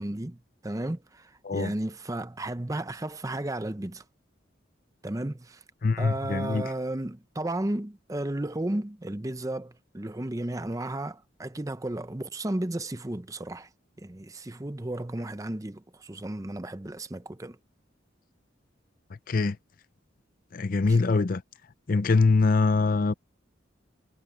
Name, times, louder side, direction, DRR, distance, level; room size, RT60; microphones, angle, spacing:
voice 1, 0.0-4.0 5.0-5.6 6.0-13.7 14.0-17.6 20.9-21.0, right 1 dB, 15° right, 0.6 m, -33 dB
voice 2, 5.8-6.6 19.3-19.6 20.5-21.4 21.9-23.1, left 3 dB, 45° left, 0.5 m, -23 dB
head